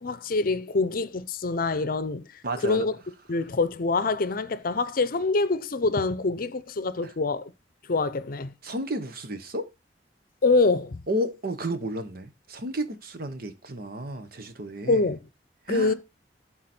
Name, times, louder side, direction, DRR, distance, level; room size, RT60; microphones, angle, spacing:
voice 1, 0.0-2.3 2.6-3.0 3.3-7.5 7.9-8.5 10.4-11.0 14.9-15.2 15.7-15.9, left 3 dB, 55° left, 0.6 m, -25 dB
voice 2, 2.4-2.9 7.0-7.1 8.6-9.7 11.1-15.1 15.7-15.9, right 1 dB, 55° right, 1.1 m, -32 dB
12.0 x 4.1 x 4.3 m
head